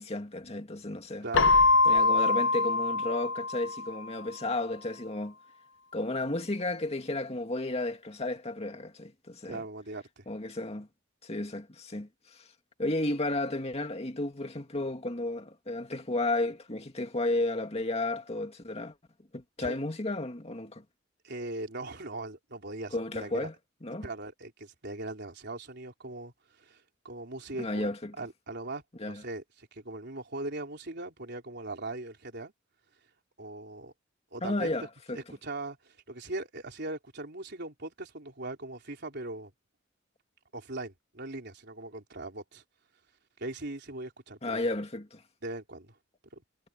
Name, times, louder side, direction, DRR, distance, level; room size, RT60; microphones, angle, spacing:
voice 1, 0.0-1.3 1.9-5.4 5.9-9.6 10.3-10.9 11.2-12.5 12.8-19.0 19.3-20.8 22.9-23.5 23.8-24.1 27.6-28.1 29.0-29.2 34.4-35.2 44.4-45.2, left 2 dB, 35° left, 2.3 m, -33 dB
voice 2, 1.2-1.5 9.5-10.2 19.6-19.8 21.2-23.5 24.0-27.9 28.2-32.5 33.4-33.9 34.3-34.7 35.1-39.5 40.5-42.6 43.4-44.7 45.4-45.9 46.3-46.4, right 2 dB, 60° right, 4.2 m, -40 dB
Keyboard (musical), 1.3-4.1, left 3 dB, 65° left, 0.7 m, -24 dB
head